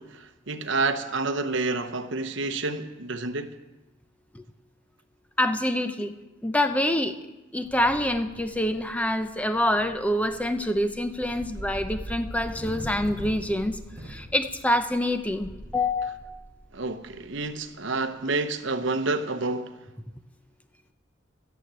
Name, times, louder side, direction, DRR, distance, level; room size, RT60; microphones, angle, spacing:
voice 1, 0.0-3.5 16.7-19.8, right 3 dB, 65° right, 1.0 m, -29 dB
voice 2, 5.4-6.1 6.4-7.1 7.5-13.8 14.0-16.4, left 1 dB, 5° left, 0.7 m, -26 dB
sound 1, 7.6-17.8, right 1 dB, 15° right, 2.0 m, -42 dB
13.0 x 9.7 x 8.9 m
head